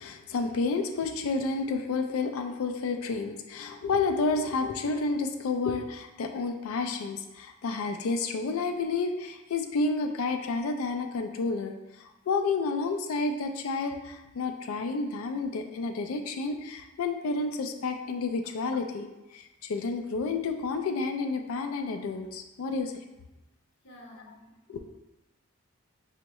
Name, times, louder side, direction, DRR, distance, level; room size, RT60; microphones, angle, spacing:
voice 1, 0.0-11.7 12.3-19.1 19.3-22.9 24.7-24.8, left 3 dB, 80° left, 6 dB, 0.4 m, -30 dB
voice 2, 23.8-24.8, left 1 dB, 55° left, -2 dB, 0.7 m, -51 dB
4.4 x 2.1 x 2.9 m, 1.0 s
head